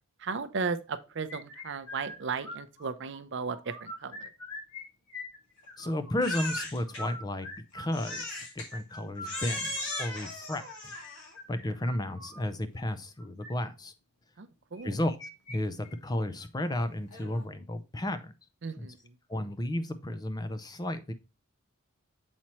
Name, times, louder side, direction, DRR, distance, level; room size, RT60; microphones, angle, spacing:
voice 1, 0.2-4.3 14.4-14.9 18.6-19.1, right 5 dB, 55° right, 0.5 m, -35 dB
sound 1, 1.3-3.2 3.5-4.8 5.1-6.1 6.8-12.4 13.2-13.5 14.7-15.6 15.8-15.9 16.4-16.5 17.1-17.5, left 1 dB, 90° left, 2.4 m, -44 dB
voice 2, 5.8-7.5 7.7-10.9 11.5-13.9 14.8-18.3 18.8-18.9 19.3-21.1, left 1 dB, 15° left, 0.4 m, -33 dB
Crying sobbing, 6.2-7.0 7.9-8.7 9.2-11.4, left 2 dB, 55° left, 2.1 m, -37 dB
7.2 x 4.4 x 2.9 m
head